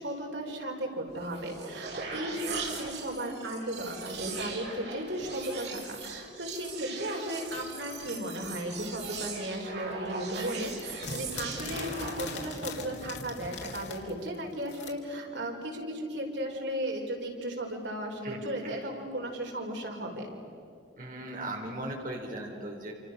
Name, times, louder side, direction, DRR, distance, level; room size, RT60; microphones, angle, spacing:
voice 1, 0.0-20.3, right 1 dB, 85° right, 1 dB, 5.0 m, -35 dB
sound 1, 1.1-12.6, right 4 dB, 70° right, 5.6 m, -40 dB
voice 2, 2.1-2.9 18.2-18.8 21.0-22.9, right 1 dB, 50° right, 0 dB, 3.7 m, -39 dB
sound 2, 7.5-9.6 9.9-14.9, left 4 dB, 90° left, 3.7 m, -41 dB
28.5 x 28.5 x 6.6 m, 2.8 s
head